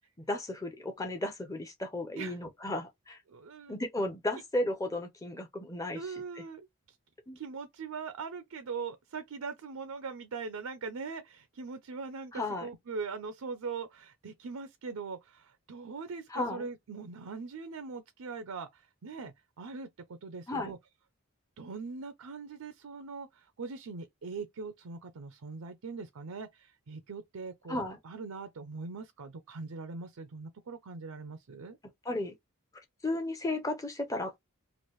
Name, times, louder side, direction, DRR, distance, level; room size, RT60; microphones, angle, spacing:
voice 1, 0.2-3.2 3.7-6.0 7.3-7.4 12.3-12.7 16.3-16.7 20.5-20.7 27.7-28.0 32.0-32.3 33.0-34.3, left 1 dB, 15° left, 0.6 m, -34 dB
voice 2, 3.3-3.8 5.9-7.0 7.4-20.8 21.6-31.8, right 4 dB, 80° right, 0.5 m, -41 dB
3.1 x 2.5 x 3.0 m
head